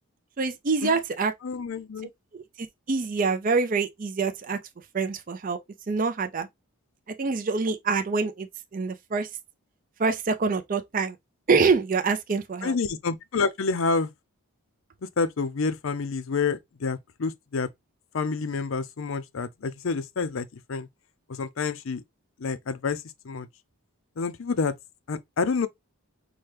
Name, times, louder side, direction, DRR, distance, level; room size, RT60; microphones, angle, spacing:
voice 1, 0.4-1.3 2.3-2.4 2.9-4.6 4.9-5.6 5.9-6.5 7.2-8.5 8.7-9.3 10.0-11.1 11.5-12.7, right 4 dB, 40° right, 0.4 m, -25 dB
voice 2, 1.4-2.1 12.6-14.1 15.2-17.7 18.1-20.9 21.3-22.0 22.4-23.5 24.2-24.7 25.1-25.7, left 4 dB, 60° left, 0.5 m, -28 dB
5.8 x 2.2 x 3.2 m
head